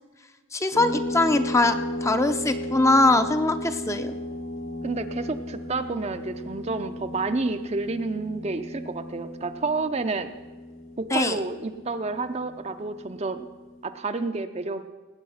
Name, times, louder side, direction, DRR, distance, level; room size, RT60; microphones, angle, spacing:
voice 1, 0.5-4.1 11.1-11.4, left 2 dB, 15° left, 8 dB, 0.5 m, -22 dB
sound 1, 0.7-13.8, left 1 dB, 70° left, 1.7 m, -35 dB
voice 2, 4.8-10.3 11.0-13.5 13.8-14.8, right 3 dB, 30° right, 9 dB, 0.5 m, -30 dB
18.5 x 8.6 x 5.6 m, 1.4 s
head